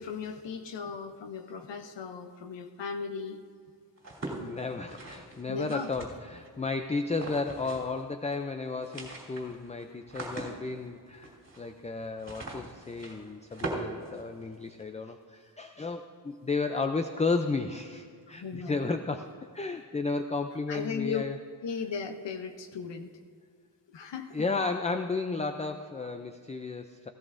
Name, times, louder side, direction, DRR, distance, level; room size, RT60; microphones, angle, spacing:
voice 1, 0.0-3.4 4.3-4.4 5.5-5.9 18.3-18.9 20.7-21.2 21.6-23.1 23.9-24.5, left 5 dB, 80° left, 6 dB, 0.8 m, -37 dB
sound 1, 4.0-6.5 7.1-8.0 8.3-8.4 8.7-14.8, right 2 dB, 40° right, 3.0 m, -41 dB
voice 2, 4.4-21.4 24.3-27.1, left 3 dB, 20° left, 7 dB, 0.3 m, -33 dB
17.0 x 16.0 x 2.5 m, 2.1 s
wide cardioid pair, 155°, 43 cm